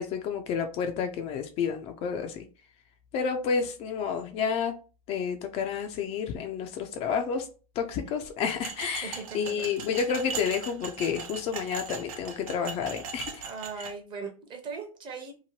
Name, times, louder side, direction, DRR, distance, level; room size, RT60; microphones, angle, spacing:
voice 1, 0.0-2.4 3.1-4.7 5.1-7.5 7.8-13.4 13.8-13.9, left 6 dB, 35° left, 0.4 m, -30 dB
sound 1, 8.6-13.9, right 6 dB, 65° right, 0.8 m, -39 dB
voice 2, 9.0-9.7 13.5-15.4, right 5 dB, 25° right, 0.7 m, -39 dB
2.8 x 2.1 x 3.0 m
hypercardioid pair, 120°, 19 cm